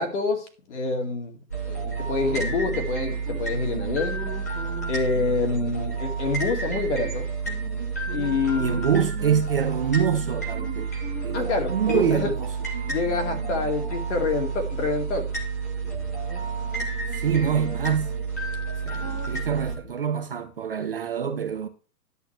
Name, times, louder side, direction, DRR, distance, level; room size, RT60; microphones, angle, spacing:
voice 1, 0.0-4.2 4.9-7.3 8.1-8.8 11.3-12.3 12.9-15.3, left 4 dB, 45° left, 2.3 m, -27 dB
sound 1, 1.5-19.8, right 4 dB, 10° left, 0.6 m, -30 dB
voice 2, 8.6-10.9 11.2-12.5 17.1-18.1 18.8-21.7, right 7 dB, 35° right, 0.6 m, -25 dB
11.0 x 8.1 x 3.4 m
hypercardioid pair, 175°, 49 cm